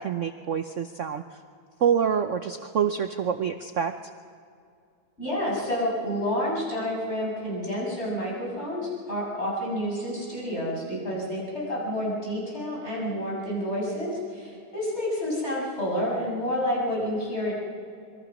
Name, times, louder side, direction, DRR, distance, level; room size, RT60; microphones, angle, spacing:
voice 1, 0.0-1.4 1.8-3.9, right 8 dB, 90° right, 8 dB, 0.6 m, -26 dB
voice 2, 5.2-17.5, equal, 30° left, -4 dB, 7.5 m, -29 dB
26.5 x 23.0 x 6.1 m, 2.4 s
omnidirectional pair, 2.2 m